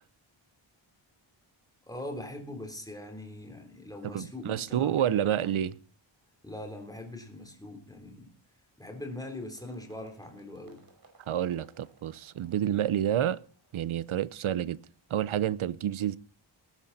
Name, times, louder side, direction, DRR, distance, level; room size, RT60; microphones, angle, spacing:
voice 1, 1.9-5.6 6.4-8.3 8.8-10.8, left 1 dB, 10° left, 3.6 m, -42 dB
voice 2, 4.0-5.7 11.3-13.4 13.7-14.8 15.1-16.2, right 10 dB, 80° right, 0.8 m, -29 dB
sound 1, 9.5-15.4, right 3 dB, 45° right, 5.5 m, -63 dB
19.0 x 11.0 x 4.2 m
wide cardioid pair, 150°, 48 cm